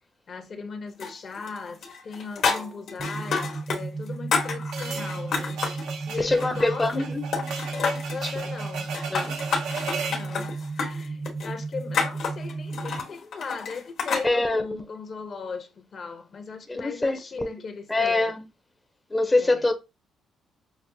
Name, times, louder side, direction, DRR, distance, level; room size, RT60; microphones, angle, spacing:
voice 1, 0.3-5.7 6.1-7.1 8.1-9.1 10.1-18.3 19.4-19.7, left 5 dB, 50° left, 0.7 m, -38 dB
sound 1, 1.0-1.6 1.8-3.8 4.1-5.8 6.3-7.1 7.3-8.2 8.8-14.3, left 5 dB, 70° left, 1.2 m, -29 dB
sound 2, 3.0-13.0, right 3 dB, 25° right, 0.5 m, -34 dB
sound 3, 4.7-10.3, right 5 dB, 85° right, 0.7 m, -36 dB
voice 2, 6.2-7.2 8.2-8.3 9.1-9.4 14.2-14.8 16.7-17.5 17.9-18.4 19.1-19.7, left 2 dB, 15° left, 0.6 m, -24 dB
5.9 x 2.0 x 2.6 m
cardioid pair, 90°, 0 cm